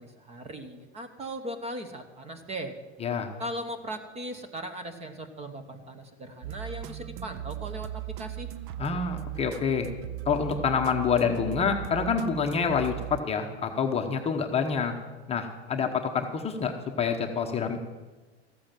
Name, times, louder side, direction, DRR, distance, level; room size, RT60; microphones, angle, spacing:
voice 1, 0.0-2.7 3.4-8.5, right 1 dB, 20° right, 9 dB, 1.2 m, -38 dB
sound 1, 6.4-13.2, right 13 dB, 45° right, 0.7 m, -38 dB
voice 2, 8.8-9.9 10.3-14.9 15.3-17.8, left 6 dB, 15° left, 3 dB, 1.0 m, -27 dB
14.0 x 8.5 x 7.5 m, 1.3 s
hypercardioid pair, 125°, 34 cm